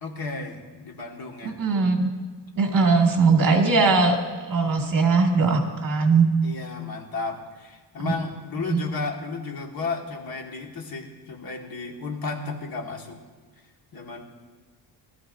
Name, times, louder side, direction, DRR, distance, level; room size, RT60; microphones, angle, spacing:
voice 1, 0.0-1.6 4.8-5.1 6.4-13.2 13.9-14.2, left 3 dB, 50° left, 1 dB, 1.7 m, -33 dB
voice 2, 1.4-2.1 2.6-6.3 8.0-8.1 8.7-8.8, right 4 dB, 45° right, 2 dB, 2.0 m, -20 dB
21.5 x 13.5 x 2.6 m, 1.4 s
wide cardioid pair, 145°, 45 cm